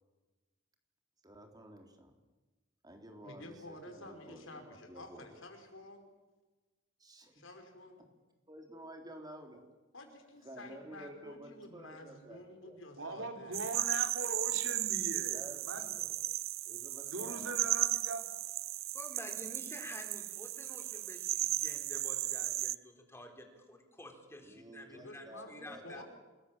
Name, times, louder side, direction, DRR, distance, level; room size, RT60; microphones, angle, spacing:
voice 1, 1.2-2.1 2.8-5.3 7.0-7.4 8.5-9.6 10.4-12.8 15.3-16.1 16.7-17.6 24.4-26.0, right 1 dB, 20° right, 4 dB, 3.6 m, -52 dB
voice 2, 3.2-6.1 7.3-8.0 9.9-13.6 24.9-26.0, left 2 dB, 75° left, 5 dB, 5.1 m, -51 dB
voice 3, 13.0-15.9 17.1-18.3, right 2 dB, 70° right, 5 dB, 3.4 m, -40 dB
sound 1, 13.5-22.7, right 15 dB, 85° right, 0.8 m, -35 dB
voice 4, 18.9-26.0, left 1 dB, 15° left, 3 dB, 4.2 m, -50 dB
29.0 x 21.0 x 7.5 m, 1.2 s
head